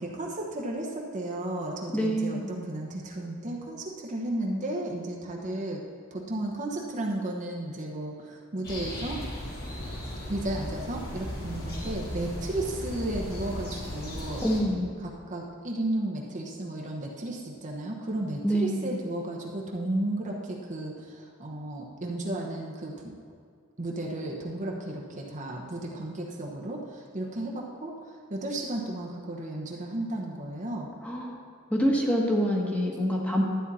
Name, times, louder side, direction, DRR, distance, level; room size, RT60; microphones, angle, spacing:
voice 1, 0.0-5.8 6.1-9.2 10.3-14.5 15.3-23.2 23.8-30.9, right 1 dB, 35° right, -1 dB, 1.1 m, -34 dB
voice 2, 1.9-2.5 14.4-14.9 18.4-19.0 31.0-31.4 31.7-33.4, equal, 5° left, -2 dB, 1.4 m, -26 dB
sound 1, 8.6-14.6, left 1 dB, 45° left, 2.6 m, -36 dB
12.5 x 9.0 x 4.2 m, 2.1 s
head